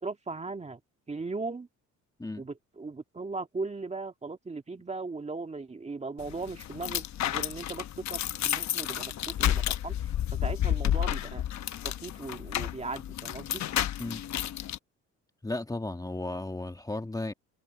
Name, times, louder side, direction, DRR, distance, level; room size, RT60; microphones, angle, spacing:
voice 1, 0.0-0.8 1.1-1.7 2.4-8.2 8.4-10.0 10.4-11.4 11.8-13.6, right 3 dB, 20° right, 1.9 m, -38 dB
sound 1, 6.2-14.8, left 11 dB, 60° left, 1.0 m, -31 dB
voice 2, 15.4-17.3, left 2 dB, 10° left, 1.9 m, -34 dB
cardioid pair, 105°, 32 cm